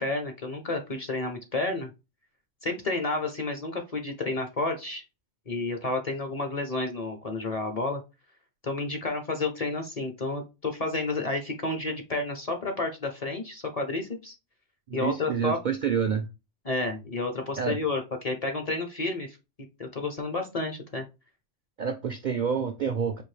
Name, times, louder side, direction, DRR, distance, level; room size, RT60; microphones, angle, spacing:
voice 1, 0.0-1.9 2.6-5.0 5.5-8.0 8.6-14.4 14.9-15.6 16.7-19.4 19.8-21.0, left 3 dB, 40° left, 0.7 m, -30 dB
voice 2, 14.9-16.3 17.6-17.8 21.8-23.2, right 7 dB, 60° right, 0.5 m, -28 dB
4.4 x 2.6 x 3.2 m
omnidirectional pair, 1.2 m